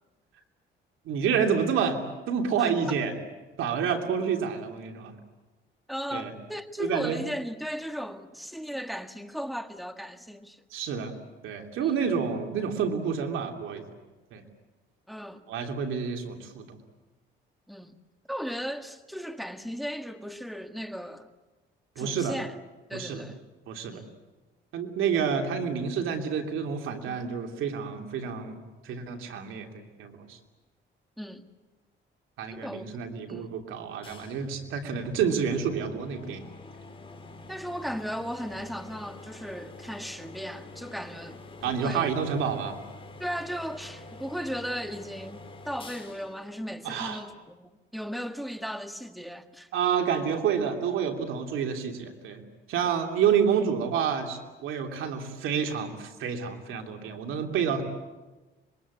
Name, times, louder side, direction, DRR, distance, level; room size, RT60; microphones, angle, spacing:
voice 1, 1.0-3.1 3.6-5.1 6.1-6.3 6.8-7.2 10.7-11.1 11.4-13.8 14.3-14.4 15.5-16.8 22.0-22.4 22.9-23.2 23.7-24.0 24.7-28.6 28.8-30.4 32.4-36.4 41.6-42.8 46.8-47.2 49.7-52.4 52.7-57.8, right 7 dB, 85° right, 3.1 m, -29 dB
voice 2, 5.9-10.6 11.8-11.9 15.1-15.4 17.7-17.9 18.3-21.3 22.0-22.5 22.9-23.4 23.9-24.1 31.2-31.5 32.5-32.9 33.3-33.5 37.5-42.1 43.2-49.7, equal, ahead, 1.7 m, -36 dB
sound 1, 34.0-47.5, left 2 dB, 25° left, 3.8 m, -47 dB
26.0 x 22.0 x 8.5 m
cardioid pair, 90°, 20 cm